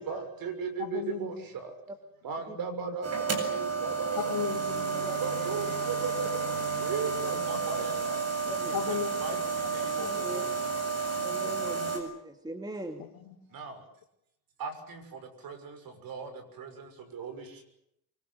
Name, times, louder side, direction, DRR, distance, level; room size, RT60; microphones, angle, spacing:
voice 1, 0.0-1.7 2.2-4.4 5.0-8.2 8.6-10.7 13.5-13.8 14.6-17.6, right 5 dB, 60° right, 6.4 m, -38 dB
voice 2, 0.8-1.3 2.5-3.0 4.2-5.1 7.3-7.5 8.7-9.2 9.5-9.7 11.2-11.9 13.0-13.6, left 10 dB, 60° left, 3.9 m, -37 dB
sound 1, 3.0-12.0, right 4 dB, 40° right, 8.0 m, -31 dB
Bowed string instrument, 4.1-9.1, right 5 dB, 80° right, 6.8 m, -44 dB
voice 3, 9.8-10.4 11.2-13.0, right 1 dB, 10° right, 2.5 m, -40 dB
26.0 x 24.5 x 7.8 m
cardioid pair, 160°, 40 cm